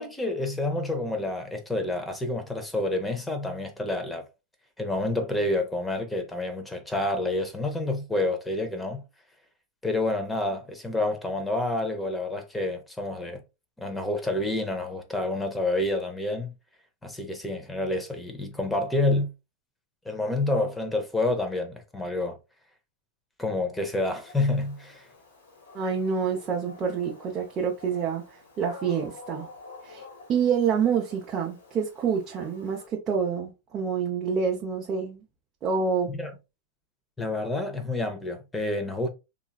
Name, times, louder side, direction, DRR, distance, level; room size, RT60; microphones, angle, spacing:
voice 1, 0.0-4.3 4.8-9.0 9.8-13.4 13.8-16.5 17.0-19.3 20.1-22.4 23.4-25.1 36.1-36.3 37.2-39.1, left 2 dB, 10° left, 0.7 m, -28 dB
Dog, 24.2-32.9, left 3 dB, 85° left, 1.3 m, -48 dB
voice 2, 25.7-28.2 28.6-29.5 29.8-30.0 30.3-35.2 35.6-36.1, right 6 dB, 30° right, 0.7 m, -27 dB
3.0 x 2.4 x 2.2 m
hypercardioid pair, 115°, 0 cm